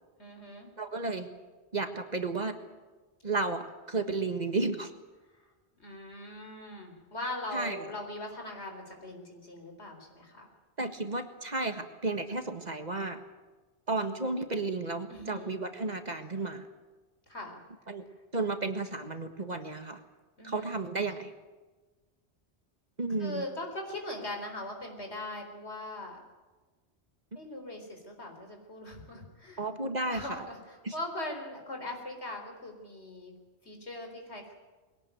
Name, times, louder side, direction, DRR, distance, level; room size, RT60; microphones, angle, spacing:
voice 1, 0.2-0.7 5.3-5.5 5.8-10.5 15.1-15.6 17.3-17.6 20.4-20.8 23.2-26.2 27.4-29.7 30.1-33.3 33.6-34.5, left 1 dB, 75° left, 3 dB, 4.5 m, -40 dB
voice 2, 0.8-1.3 1.7-2.6 3.2-4.9 7.5-7.8 10.8-13.2 13.9-16.7 17.9-18.0 18.3-20.0 20.4-21.3 23.0-23.4 29.6-30.4 30.8-30.9, right 3 dB, 40° right, 7 dB, 1.6 m, -33 dB
21.5 x 18.0 x 9.2 m, 1.3 s
omnidirectional pair, 1.1 m